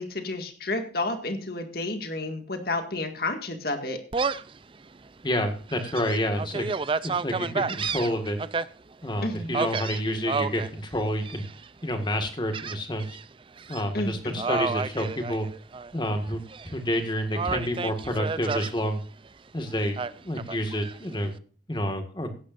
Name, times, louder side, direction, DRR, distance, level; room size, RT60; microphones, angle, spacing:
voice 1, 0.0-4.0 9.2-9.6 13.9-14.4, left 2 dB, 55° left, 6 dB, 2.0 m, -31 dB
Gull seagull, 4.1-4.6 5.1-5.2 5.7-8.6 9.5-10.7 11.2-11.7 12.5-13.2 13.6-13.8 14.4-15.9 16.3-17.0 17.3-18.7 20.0-21.0, right 4 dB, 30° right, 0.4 m, -30 dB
voice 2, 5.2-6.7 7.0-8.4 9.0-11.4 11.8-13.2 13.7-15.5 15.9-19.0 19.5-21.3 21.7-22.3, equal, 25° left, 6 dB, 1.8 m, -29 dB
16.0 x 10.0 x 2.6 m, 0.40 s
head